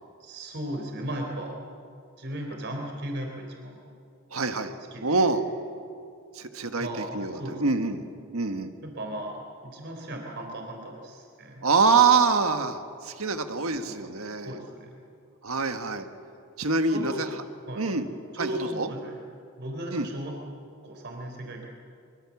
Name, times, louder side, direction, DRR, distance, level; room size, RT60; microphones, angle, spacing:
voice 1, 0.2-1.6 2.2-3.8 4.9-5.1 6.8-7.6 8.8-11.6 13.9-14.1 14.4-15.0 16.9-17.3 17.7-17.8 18.3-19.2 19.6-20.3 20.8-21.7, right 1 dB, 55° right, 2 dB, 3.8 m, -36 dB
voice 2, 4.3-4.7 5.0-5.4 6.3-6.9 7.1-8.0 8.3-8.7 11.6-14.6 15.4-16.1 16.6-17.3 17.8-18.1 18.4-18.9 19.9-20.1, right 4 dB, 85° right, 7 dB, 1.6 m, -25 dB
24.0 x 23.5 x 7.3 m, 2.4 s
head